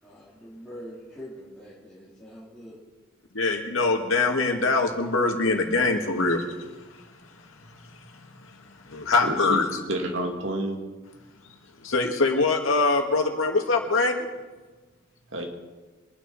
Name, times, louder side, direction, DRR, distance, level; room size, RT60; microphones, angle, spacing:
voice 1, 0.0-2.8, equal, 5° left, -10 dB, 3.4 m, -44 dB
voice 2, 3.3-9.6 11.8-14.3, left 3 dB, 85° left, 3 dB, 2.1 m, -24 dB
voice 3, 9.2-9.6 9.9-10.8 15.3-15.5, right 1 dB, 70° right, 2 dB, 2.2 m, -29 dB
24.5 x 9.9 x 4.2 m, 1.3 s
head